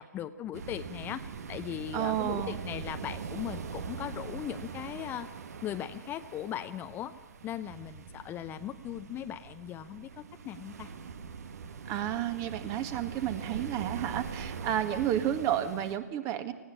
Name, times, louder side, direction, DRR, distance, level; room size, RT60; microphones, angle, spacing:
voice 1, 0.0-5.3 5.6-7.1 7.4-10.9, left 10 dB, 20° left, 11 dB, 0.8 m, -38 dB
sound 1, 0.5-16.0, right 6 dB, 65° right, 1.7 m, -42 dB
voice 2, 1.9-2.6 11.9-16.5, right 11 dB, 30° right, 10 dB, 1.9 m, -31 dB
19.5 x 16.5 x 8.7 m, 1.2 s
figure-of-eight pair, 120°, 9 cm